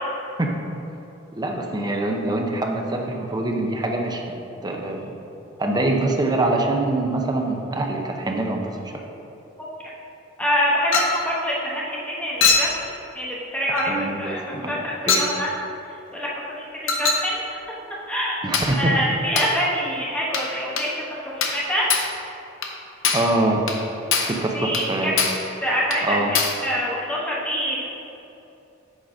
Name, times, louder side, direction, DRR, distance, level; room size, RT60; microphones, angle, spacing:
voice 1, 1.3-4.3 4.6-5.2 5.6-8.8 13.9-14.7 15.1-15.3 18.4-18.9 23.1-23.6 24.2-25.2 26.0-26.3, right 2 dB, 20° right, 1 dB, 0.6 m, -24 dB
voice 2, 10.4-15.5 16.1-16.3 16.6-17.6 18.1-18.4 18.7-20.9 21.3-21.9 24.5-25.1 25.6-26.4 26.6-27.8, equal, 5° left, -6 dB, 1.2 m, -25 dB
Chink clink, 10.9-11.2 12.4-12.8 13.8-13.9 15.1-15.3 16.9-17.3 18.5-18.8 19.4-19.6 20.3-20.5 20.8-20.9 21.4-21.6 21.9-22.1 22.6-22.7 23.0-23.3 23.7-23.8 24.1-24.4 24.7-24.9 25.2-25.5 25.9-26.0 26.3-26.6, left 4 dB, 80° left, 0.7 m, -22 dB
7.2 x 3.9 x 5.0 m, 2.8 s
head